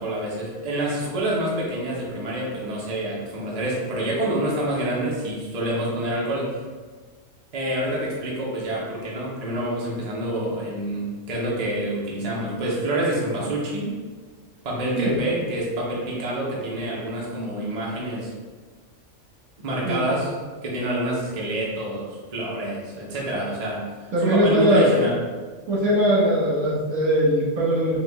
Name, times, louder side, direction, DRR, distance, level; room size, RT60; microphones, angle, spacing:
voice 1, 0.0-6.6 7.5-14.0 14.6-18.3 19.6-20.3 20.6-22.0 22.3-23.8 24.2-25.2, right 1 dB, 40° right, -4 dB, 0.7 m, -27 dB
voice 2, 19.8-20.2 24.1-24.9 25.7-28.0, equal, 70° right, -6 dB, 1.5 m, -20 dB
4.6 x 2.3 x 3.4 m, 1.5 s
omnidirectional pair, 1.3 m